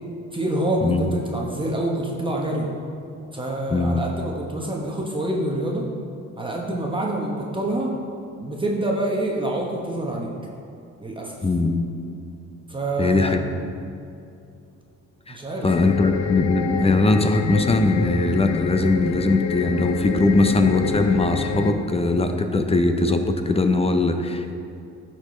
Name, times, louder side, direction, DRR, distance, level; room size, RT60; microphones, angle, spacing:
voice 1, 0.3-2.7 3.3-5.8 6.4-8.0 8.4-10.3 11.0-11.4 12.7-13.6 15.3-15.7, right 1 dB, 15° right, -2 dB, 1.0 m, -26 dB
voice 2, 3.7-4.0 11.4-11.9 13.0-13.4 15.3-15.4 15.6-24.5, left 3 dB, 20° left, 6 dB, 0.6 m, -20 dB
sound 1, 15.7-21.7, left 5 dB, 70° left, 0.7 m, -28 dB
12.5 x 4.4 x 3.1 m, 2.6 s
cardioid pair, 90°, 30 cm